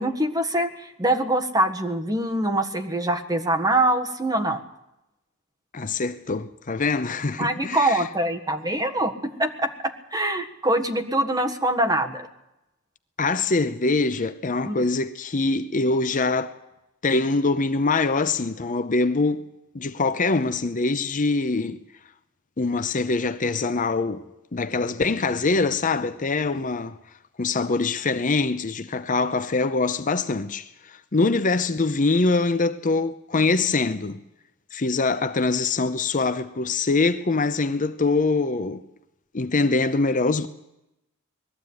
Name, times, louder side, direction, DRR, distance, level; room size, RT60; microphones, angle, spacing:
voice 1, 0.0-4.6 7.4-9.7 10.1-12.3 14.6-14.8, right 1 dB, 15° right, 1.6 m, -24 dB
voice 2, 5.7-8.0 13.2-16.5 17.0-19.4 19.7-21.8 22.6-24.2 24.5-27.0 27.4-34.2 34.7-38.8 39.3-40.5, left 3 dB, 35° left, 0.7 m, -24 dB
20.0 x 14.0 x 9.6 m
head